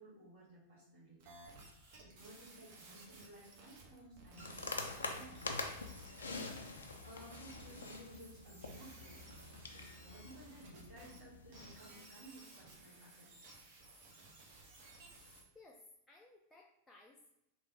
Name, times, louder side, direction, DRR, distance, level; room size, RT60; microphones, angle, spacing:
voice 1, 0.0-1.3 2.0-5.6 6.2-6.6 7.0-9.2 9.7-13.3, right 1 dB, 75° right, -11 dB, 1.4 m, -56 dB
sound 1, 1.2-11.2 11.5-15.4, right 2 dB, 45° right, 0.8 m, -58 dB
sound 2, 4.4-11.8, left 3 dB, 70° left, 0.4 m, -46 dB
voice 2, 15.5-17.3, left 2 dB, 10° left, -1 dB, 0.4 m, -60 dB
3.3 x 2.5 x 3.2 m, 0.85 s
figure-of-eight pair, 90°, 0 cm